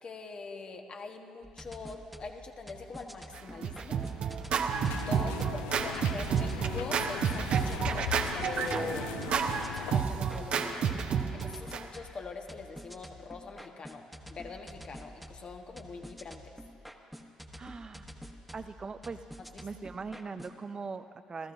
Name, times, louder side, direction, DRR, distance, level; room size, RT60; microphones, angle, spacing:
voice 1, 0.0-4.0 4.5-10.9 11.3-16.6 19.5-19.7, left 4 dB, 45° left, 3 dB, 1.3 m, -43 dB
sound 1, 1.4-20.6, equal, ahead, 1.3 m, -49 dB
Scratching (performance technique), 3.3-11.8, right 7 dB, 60° right, 0.9 m, -30 dB
sound 2, 4.7-10.0, left 12 dB, 80° left, 0.4 m, -40 dB
voice 2, 5.1-5.7 17.5-18.1 18.5-19.2 19.6-21.5, right 4 dB, 35° right, 9 dB, 0.5 m, -41 dB
29.0 x 13.5 x 2.6 m, 2.5 s
hypercardioid pair, 55°, 2 cm